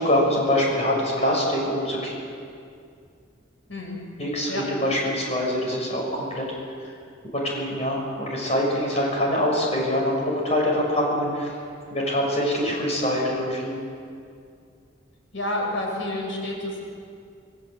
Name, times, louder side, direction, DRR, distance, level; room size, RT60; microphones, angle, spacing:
voice 1, 0.0-2.1 4.2-6.5 7.3-11.5 11.9-13.8, left 1 dB, 35° left, -2 dB, 6.4 m, -24 dB
voice 2, 3.7-4.0 4.5-4.7 15.3-16.8, left 1 dB, 90° left, 0 dB, 6.3 m, -29 dB
26.5 x 22.0 x 8.1 m, 2.3 s
head